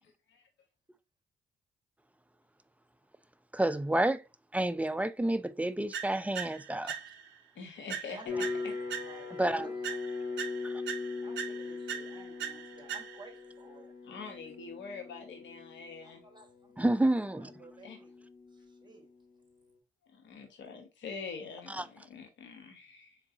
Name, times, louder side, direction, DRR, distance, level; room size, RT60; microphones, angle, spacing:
voice 1, 3.5-4.2 4.5-7.0 9.4-9.7 10.7-10.8 16.8-17.5 21.7-21.8, right 1 dB, 5° right, 0.4 m, -29 dB
sound 1, 5.9-7.4 7.9-9.4 9.8-13.4, right 8 dB, 65° right, 0.6 m, -41 dB
voice 2, 7.5-8.7 14.0-16.2 17.8-18.0 20.1-23.2, left 5 dB, 65° left, 1.0 m, -45 dB
voice 3, 8.1-9.8 11.2-13.9 16.0-16.9 17.3-18.2 18.5-19.1, right 2 dB, 20° right, 1.5 m, -54 dB
sound 2, 8.2-19.3, left 4 dB, 40° left, 1.5 m, -41 dB
3.8 x 3.6 x 2.7 m
hypercardioid pair, 50°, 20 cm